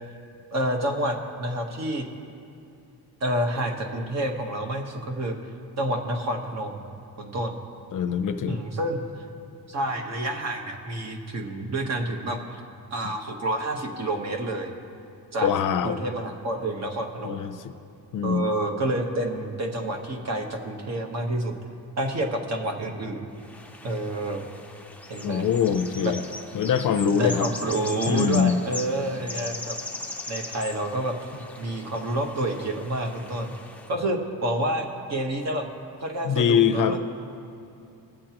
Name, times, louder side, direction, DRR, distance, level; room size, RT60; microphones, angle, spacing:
voice 1, 0.5-2.1 3.2-5.3 5.8-6.9 7.2-7.6 8.5-9.0 9.7-12.6 12.9-14.7 15.3-15.5 15.8-17.5 18.2-21.5 22.0-23.3 23.8-24.5 25.1-25.5 26.0-26.1 27.1-29.8 30.3-31.2 31.6-33.5 33.9-35.7 36.0-37.0, right 1 dB, 40° right, 3 dB, 1.2 m, -28 dB
voice 2, 7.9-8.6 15.4-16.0 17.2-17.6 18.1-18.4 25.2-26.2 26.5-27.5 28.1-28.6 36.2-37.0, left 7 dB, 55° left, 9 dB, 0.6 m, -23 dB
sound 1, 23.4-33.9, left 2 dB, 5° left, 0.6 m, -39 dB
21.0 x 7.6 x 3.0 m, 2.7 s
cardioid pair, 130°, 39 cm